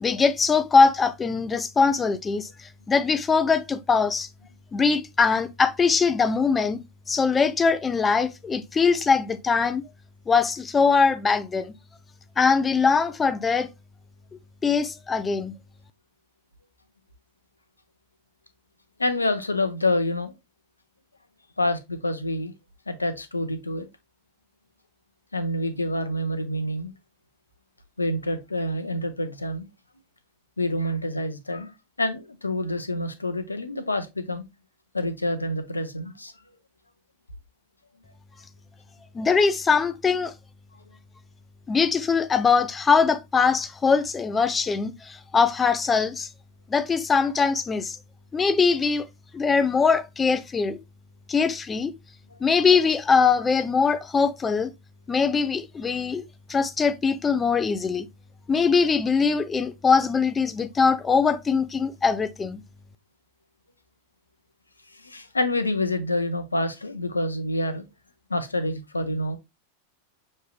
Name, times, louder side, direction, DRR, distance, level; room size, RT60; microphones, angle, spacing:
voice 1, 0.0-4.3 4.7-6.8 7.1-9.8 10.3-11.7 12.4-13.7 14.6-15.5 39.1-40.3 41.7-46.3 46.7-48.0 48.3-49.1 49.3-50.8 51.3-51.9 52.4-54.7 55.1-56.2 56.5-58.1 58.5-62.6, left 5 dB, 15° left, 0.5 m, -22 dB
voice 2, 19.0-20.3 21.6-22.5 22.9-23.9 25.3-26.9 28.0-29.7 30.6-31.7 32.0-34.4 34.9-36.3 52.3-52.4 64.9-67.8 68.3-69.4, left 1 dB, 80° left, 0.7 m, -27 dB
6.5 x 3.2 x 2.3 m
figure-of-eight pair, 90°, 0 cm